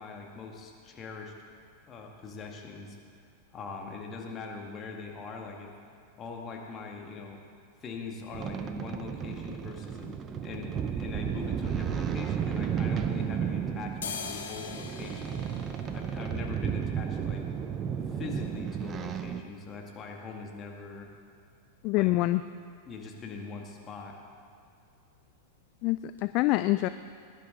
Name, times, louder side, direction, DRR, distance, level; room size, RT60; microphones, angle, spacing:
voice 1, 0.0-1.3 1.9-3.0 3.5-5.7 6.2-7.4 7.8-15.4 15.9-17.4 18.1-21.1 21.9-22.1 22.9-24.1, left 4 dB, 25° left, 0 dB, 2.1 m, -42 dB
sound 1, 8.3-19.4, right 8 dB, 25° right, 0.7 m, -33 dB
sound 2, 13.4-13.5 13.8-21.5 21.9-22.0 22.2-22.8 23.1-23.3 23.6-23.8 24.1-24.8 25.1-25.3 25.8-25.9 26.2-26.3, left 6 dB, 65° left, 1.1 m, -45 dB
voice 2, 21.8-22.4 25.8-26.9, left 18 dB, 40° left, 12 dB, 0.3 m, -25 dB
20.5 x 10.5 x 4.0 m, 2.4 s
figure-of-eight pair, 90°, 0 cm